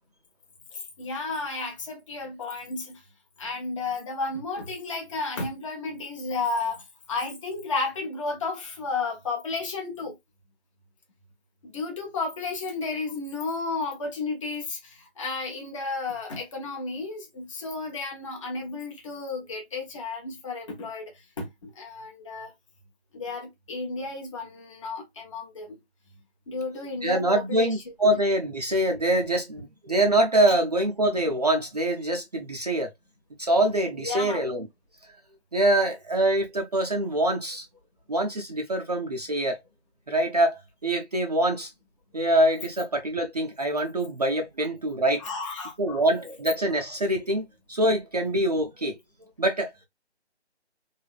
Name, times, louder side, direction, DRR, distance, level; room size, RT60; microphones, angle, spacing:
voice 1, 0.7-3.0 3.4-10.2 11.6-22.5 23.1-25.8 26.5-27.7 34.0-34.4 45.2-46.0, left 3 dB, 30° left, 0.7 m, -33 dB
voice 2, 27.0-32.9 33.4-34.7 35.5-37.7 38.1-39.6 40.1-41.7 42.1-45.3 45.8-49.0 49.4-49.7, right 1 dB, 35° right, 0.5 m, -24 dB
3.3 x 2.6 x 2.3 m
figure-of-eight pair, 160°, 34 cm